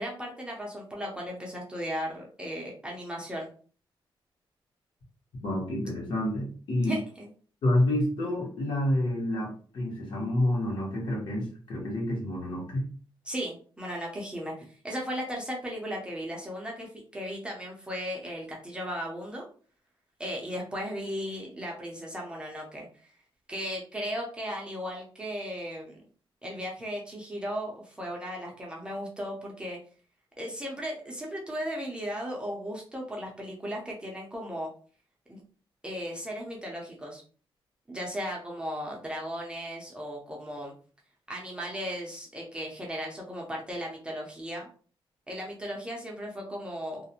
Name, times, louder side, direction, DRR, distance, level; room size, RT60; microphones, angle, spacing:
voice 1, 0.0-3.5 6.8-7.3 13.2-19.5 20.2-23.1 23.5-26.0 26.4-29.8 30.4-34.7 35.3-35.4 35.8-37.2 37.9-40.7 41.3-44.7 45.3-47.0, equal, 10° right, -2 dB, 0.5 m, -36 dB
voice 2, 5.4-7.0 7.6-12.9, left 1 dB, 55° left, -2 dB, 1.0 m, -28 dB
2.4 x 2.0 x 2.8 m, 0.41 s
wide cardioid pair, 175°, 9 cm